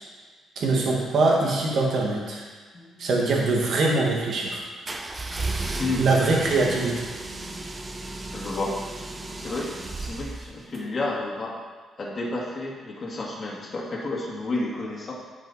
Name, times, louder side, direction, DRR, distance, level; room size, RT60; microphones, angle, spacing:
voice 1, 0.6-2.4 3.0-4.6 6.0-7.1, right 3 dB, 65° right, -2 dB, 1.9 m, -23 dB
sound 1, 4.9-10.8, right 2 dB, 25° right, 0.8 m, -34 dB
voice 2, 8.3-8.7 9.4-11.5 12.0-15.1, left 2 dB, 40° left, -3 dB, 1.9 m, -31 dB
9.2 x 5.4 x 4.2 m, 1.4 s
cardioid pair, 90°, 0 cm